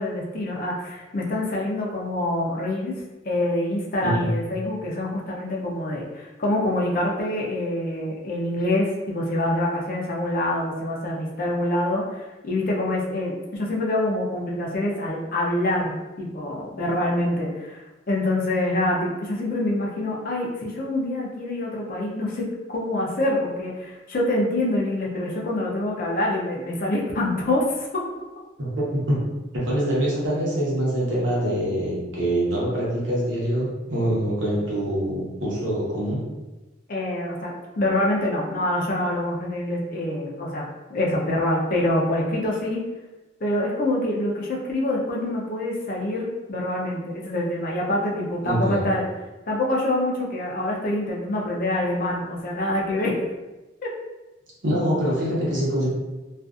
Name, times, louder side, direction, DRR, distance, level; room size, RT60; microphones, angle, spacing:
voice 1, 0.0-2.9 3.2-28.0 36.9-40.6 40.9-42.8 43.4-49.0 49.5-53.2, left 1 dB, 50° left, -2 dB, 0.5 m, -26 dB
voice 2, 28.6-29.2 29.5-36.2 48.4-48.8 54.6-55.9, right 1 dB, 85° right, -6 dB, 1.0 m, -24 dB
2.5 x 2.4 x 2.4 m, 1.1 s
head